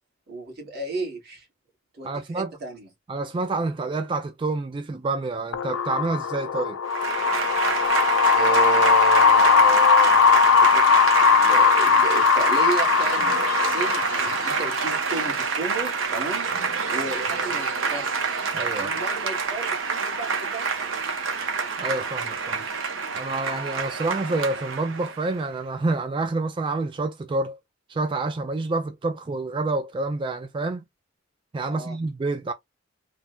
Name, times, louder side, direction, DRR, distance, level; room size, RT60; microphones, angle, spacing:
voice 1, 0.3-1.5 1.9-2.9 8.3-16.5 16.9-18.1 18.7-21.1 31.7-32.0, right 3 dB, 55° right, 1.6 m, -33 dB
voice 2, 2.0-2.5 3.1-6.8 18.5-18.9 21.8-22.6 23.1-27.6 27.9-30.8 31.5-32.5, right 3 dB, 25° right, 0.3 m, -28 dB
sound 1, 5.5-15.0, left 6 dB, 80° left, 0.4 m, -19 dB
Applause / Crowd, 6.9-25.4, right 5 dB, 75° right, 0.8 m, -27 dB
3.3 x 2.1 x 2.2 m
head